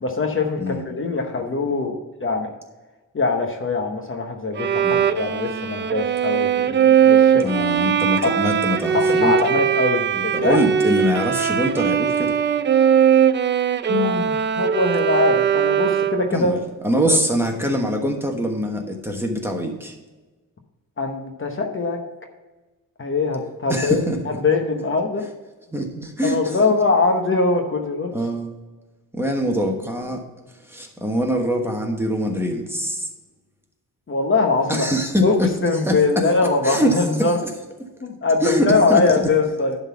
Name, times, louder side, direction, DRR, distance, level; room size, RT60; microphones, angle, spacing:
voice 1, 0.0-2.5 3.1-7.7 8.2-8.3 8.9-10.6 13.9-16.6 17.1-17.2 21.0-22.0 23.0-24.0 24.2-25.2 26.2-28.1 34.1-34.9 35.2-35.4 35.6-37.4 38.0-39.8, left 3 dB, 40° left, 3 dB, 1.0 m, -22 dB
Bowed string instrument, 4.6-16.4, right 8 dB, 35° right, 0.4 m, -19 dB
voice 2, 7.4-9.5 10.1-12.4 16.3-19.9 23.7-24.2 25.7-26.6 28.1-28.5 29.1-30.2 30.7-33.1 34.7-35.5 35.8-36.2 36.6-37.5 38.4-39.3, equal, 5° right, 1 dB, 1.2 m, -23 dB
11.0 x 4.0 x 6.9 m, 1.2 s
wide cardioid pair, 135°, 33 cm